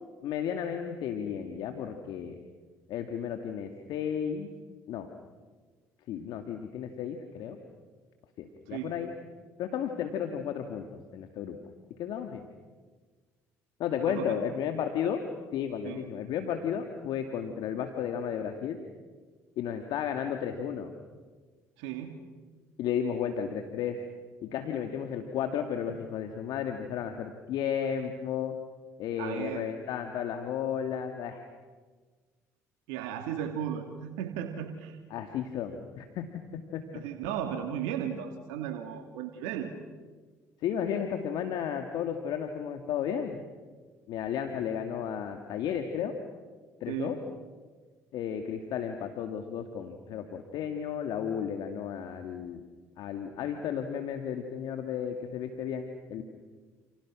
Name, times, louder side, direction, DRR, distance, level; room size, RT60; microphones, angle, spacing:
voice 1, 0.2-2.3 2.9-4.5 4.9-5.1 6.1-7.6 8.4-9.1 9.6-10.9 11.1-11.6 12.0-12.5 13.8-15.2 15.5-18.8 19.6-20.9 22.8-24.0 24.4-28.5 29.0-31.4 35.1-36.2 36.7-36.8 40.6-43.4 44.1-46.1 46.8-47.2 48.1-52.6 53.0-56.2, left 8 dB, 65° left, 5 dB, 2.3 m, -33 dB
voice 2, 14.1-14.4 15.8-16.1 21.8-22.2 29.2-29.7 32.9-35.0 36.9-39.7 46.9-47.1, right 9 dB, 75° right, 5 dB, 2.5 m, -35 dB
29.5 x 29.5 x 6.4 m, 1.4 s
hypercardioid pair, 60°, 8 cm